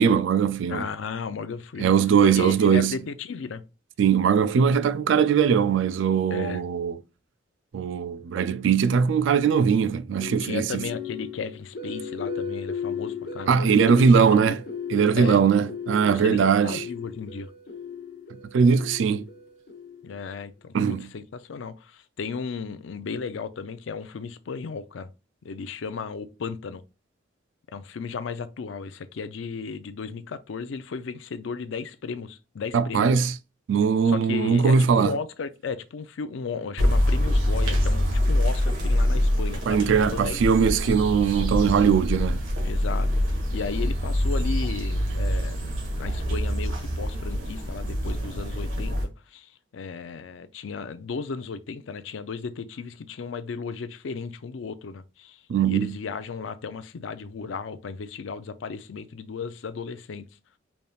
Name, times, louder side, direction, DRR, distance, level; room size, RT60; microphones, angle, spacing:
voice 1, 0.0-0.9 1.8-3.0 4.0-7.0 7.7-10.8 13.5-14.6 14.9-16.9 18.5-19.2 20.7-21.1 32.7-33.4 33.7-35.2 39.7-42.4 55.5-56.0, right 6 dB, 70° right, 0.3 m, -20 dB
voice 2, 0.7-1.9 2.2-3.6 6.3-6.6 10.4-14.6 15.2-15.4 16.0-17.5 20.0-25.1 25.4-26.8 27.7-33.2 34.0-40.5 42.6-60.2, left 5 dB, 75° left, 0.4 m, -35 dB
sound 1, 10.2-20.3, left 6 dB, 55° left, 0.9 m, -36 dB
sound 2, 36.8-49.0, equal, 90° right, 1.4 m, -25 dB
4.0 x 3.5 x 2.3 m
head